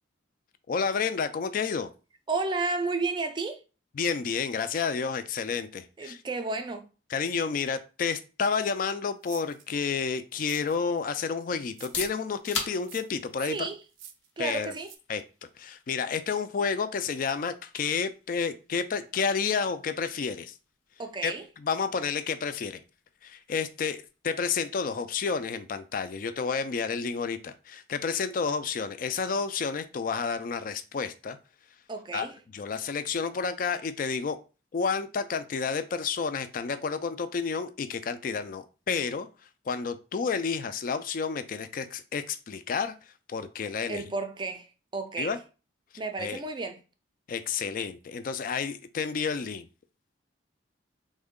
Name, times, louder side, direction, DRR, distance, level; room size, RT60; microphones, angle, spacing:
voice 1, 0.7-1.9 4.0-6.2 7.1-13.7 14.4-14.7 15.1-15.2 15.6-20.5 21.2-21.3 21.6-22.8 23.2-31.4 32.1-32.3 32.5-34.4 34.7-39.3 39.7-42.9 43.3-44.0 45.2-45.4 46.2-46.4 47.3-49.7, left 5 dB, 45° left, 0.3 m, -30 dB
voice 2, 2.3-3.6 6.0-6.9 13.4-13.8 14.4-14.9 21.0-21.4 31.9-32.4 43.9-45.4 46.0-46.8, right 3 dB, 25° right, 0.4 m, -32 dB
sound 1, 9.2-9.7 10.3-11.0 11.7-12.1 12.8-13.2 13.9-14.3 14.8-15.0, right 9 dB, 90° right, 0.4 m, -49 dB
sound 2, 11.7-27.3, left 4 dB, 80° left, 0.9 m, -45 dB
3.5 x 2.1 x 3.6 m
head